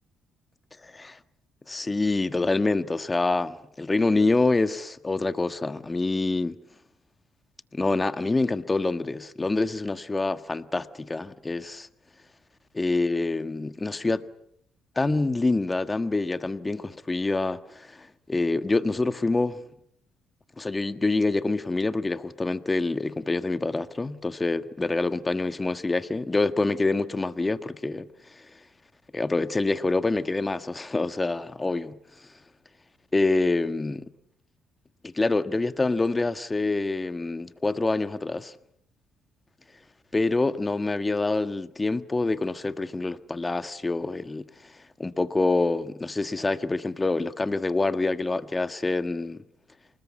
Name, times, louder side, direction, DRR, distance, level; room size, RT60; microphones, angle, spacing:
voice 1, 0.8-1.2 1.7-6.6 7.7-11.9 12.7-14.3 14.9-19.6 20.6-28.5 29.1-32.0 33.1-34.1 35.0-38.5 40.1-44.7 45.0-49.4, left 3 dB, 20° left, 1.5 m, -26 dB
27.5 x 20.5 x 8.6 m
supercardioid pair, 65°, 0 cm